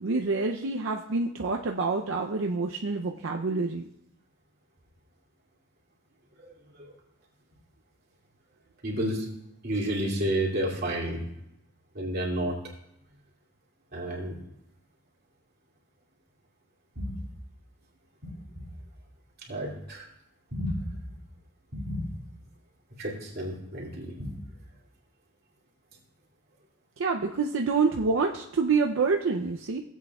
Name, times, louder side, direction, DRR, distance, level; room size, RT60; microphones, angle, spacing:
voice 1, 0.0-3.8 27.0-29.8, right 4 dB, 80° right, 2 dB, 0.6 m, -27 dB
voice 2, 6.4-6.9 8.8-9.3 9.6-11.3 11.9-12.5 13.9-14.4 17.0-17.1 18.2-18.3 19.5-20.1 20.5-21.1 21.7-22.1 23.0-24.3, right 1 dB, 50° right, -3 dB, 2.6 m, -31 dB
17.0 x 8.3 x 2.3 m, 0.81 s
head